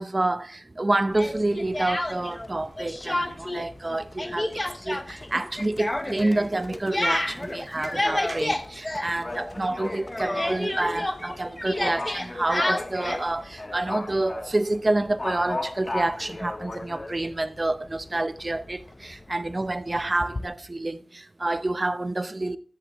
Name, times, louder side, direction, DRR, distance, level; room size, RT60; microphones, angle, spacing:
voice 1, 0.0-22.6, right 2 dB, 35° right, 0.7 m, -28 dB
Livestock farm animals working animals, 1.1-20.4, left 2 dB, 35° left, 0.7 m, -39 dB
Speech, 1.1-2.5 2.8-3.6 3.9-9.6 9.9-13.3, left 1 dB, 20° left, 1.0 m, -29 dB
13.5 x 7.2 x 3.0 m
wide cardioid pair, 80°, 0 cm